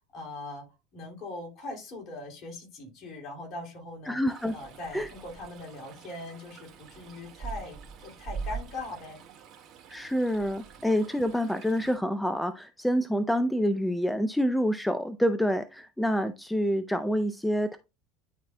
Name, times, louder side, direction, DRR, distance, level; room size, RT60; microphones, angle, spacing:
voice 1, 0.1-0.6 0.9-4.2 4.5-9.2, left 2 dB, 45° left, 1 dB, 2.7 m, -41 dB
voice 2, 4.1-4.5 4.9-5.1 9.9-17.8, equal, 5° left, 11 dB, 0.5 m, -27 dB
Stream, 4.3-12.0, right 5 dB, 45° right, 2.1 m, -43 dB
11.0 x 4.1 x 2.2 m, 0.27 s
figure-of-eight pair, 70°, 0 cm